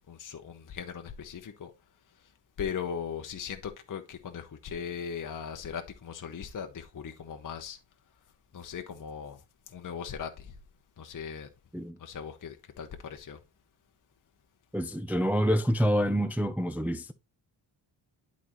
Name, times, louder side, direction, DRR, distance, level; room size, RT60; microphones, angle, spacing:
voice 1, 0.0-1.7 2.1-7.8 8.5-10.6 11.0-11.5 12.0-13.4, left 7 dB, 40° left, 0.8 m, -39 dB
voice 2, 14.7-17.1, equal, 5° right, 0.4 m, -27 dB
11.0 x 4.2 x 3.0 m
cardioid pair, 105°, 48 cm